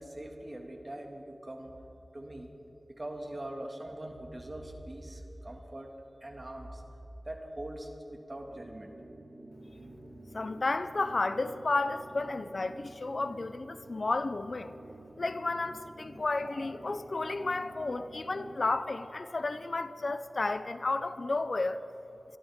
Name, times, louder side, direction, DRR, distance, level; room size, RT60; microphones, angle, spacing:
voice 1, 0.0-1.7 2.1-2.5 2.9-5.9 6.2-6.8 7.3-8.9, right 1 dB, 40° right, 1.9 m, -42 dB
sound 1, 8.4-18.8, right 2 dB, 70° right, 2.4 m, -51 dB
voice 2, 10.3-14.8 15.2-21.8, left 3 dB, 60° left, 0.5 m, -32 dB
24.5 x 12.5 x 3.6 m
wide cardioid pair, 55°, 0 cm